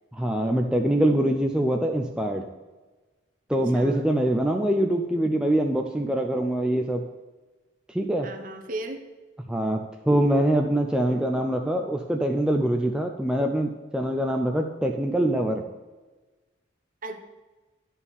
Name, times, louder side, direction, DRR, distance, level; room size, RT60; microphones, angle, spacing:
voice 1, 0.1-2.5 3.5-7.0 7.9-8.3 9.5-15.6, right 1 dB, 5° right, 2 dB, 0.4 m, -24 dB
voice 2, 3.5-4.0 8.2-9.0 17.0-17.2, right 2 dB, 40° right, 6 dB, 0.9 m, -36 dB
10.5 x 4.4 x 7.1 m, 1.2 s
head